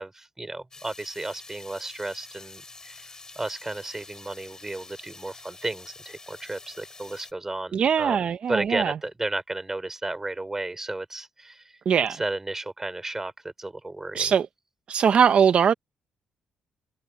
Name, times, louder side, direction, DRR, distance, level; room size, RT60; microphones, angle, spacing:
voice 1, 0.0-3.1 3.4-11.7 12.1-14.3, right 2 dB, 15° right, 4.8 m, -33 dB
sound 1, 0.7-7.3, left 3 dB, 25° left, 3.9 m, -47 dB
voice 2, 7.7-8.9 11.9-12.2 14.1-14.5 14.9-15.7, right 7 dB, 55° right, 0.8 m, -21 dB
cardioid pair, 85°, 2 cm